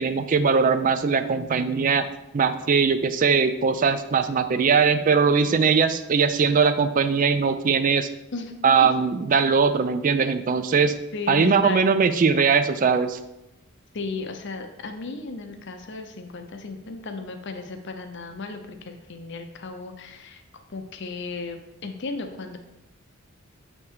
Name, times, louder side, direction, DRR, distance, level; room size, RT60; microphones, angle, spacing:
voice 1, 0.0-2.0 2.3-8.1 8.6-10.9 11.3-13.2, right 5 dB, 35° right, 10 dB, 0.3 m, -20 dB
voice 2, 11.1-12.1 13.9-20.4 20.7-22.6, left 3 dB, 55° left, 5 dB, 0.7 m, -35 dB
7.1 x 3.3 x 4.7 m, 0.90 s
head